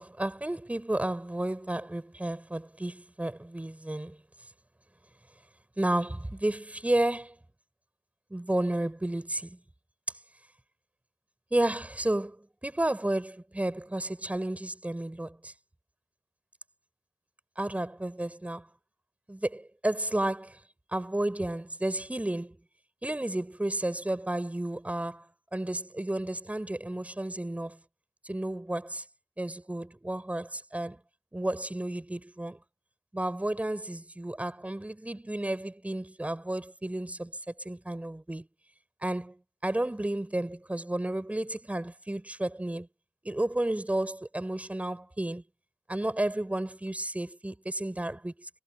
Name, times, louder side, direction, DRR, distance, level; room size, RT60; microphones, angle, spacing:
voice 1, 0.0-4.2 5.8-7.4 8.3-9.6 11.5-15.5 17.6-18.7 19.3-20.6 20.9-22.6 23.0-27.8 28.2-29.0 29.4-31.0 31.3-32.6 33.1-38.5 39.0-42.9 43.2-45.4 45.9-48.5, right 1 dB, 20° right, 7.7 m, -32 dB
wide cardioid pair, 80°, 7 cm